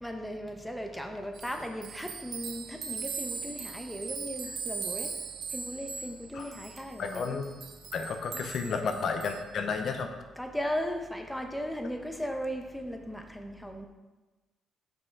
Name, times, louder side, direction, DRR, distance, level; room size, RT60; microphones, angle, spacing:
voice 1, 0.0-5.1 5.5-7.4 8.6-9.0 10.4-13.9, equal, 5° left, 4 dB, 0.8 m, -37 dB
sound 1, 1.3-9.4, right 5 dB, 65° right, 0.9 m, -39 dB
voice 2, 7.0-7.6 7.9-10.1, left 5 dB, 60° left, 5 dB, 0.7 m, -32 dB
6.0 x 5.4 x 4.7 m, 1.2 s
cardioid pair, 90°, 0 cm